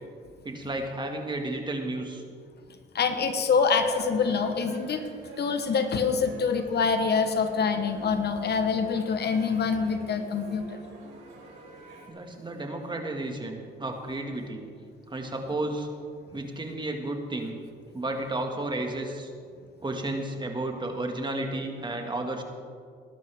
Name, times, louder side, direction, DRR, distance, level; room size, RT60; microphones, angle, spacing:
voice 1, 0.4-2.2 12.1-14.7 15.1-15.9 16.3-17.6 17.9-19.3 19.8-22.4, right 2 dB, 25° right, 3 dB, 1.9 m, -32 dB
voice 2, 2.9-5.0 5.4-10.8, left 5 dB, 55° left, 8 dB, 1.1 m, -25 dB
sound 1, 3.7-12.1, right 2 dB, 75° right, 4.3 m, -47 dB
20.0 x 11.5 x 3.6 m, 2.1 s
cardioid pair, 90°, 20 cm